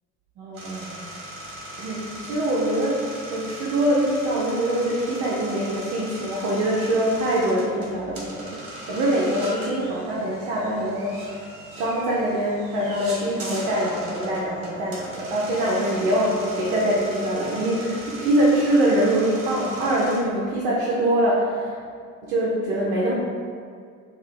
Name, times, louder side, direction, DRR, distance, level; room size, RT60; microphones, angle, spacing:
voice 1, 0.4-1.0 1.8-11.4 11.8-21.8 22.2-23.1, right 1 dB, 60° right, -5 dB, 0.7 m, -24 dB
sound 1, 0.5-20.2, right 1 dB, 35° right, 1.2 m, -39 dB
sound 2, 14.3-18.8, right 2 dB, 15° right, 0.9 m, -40 dB
2.7 x 2.5 x 4.2 m, 2.2 s
figure-of-eight pair, 50°, 41 cm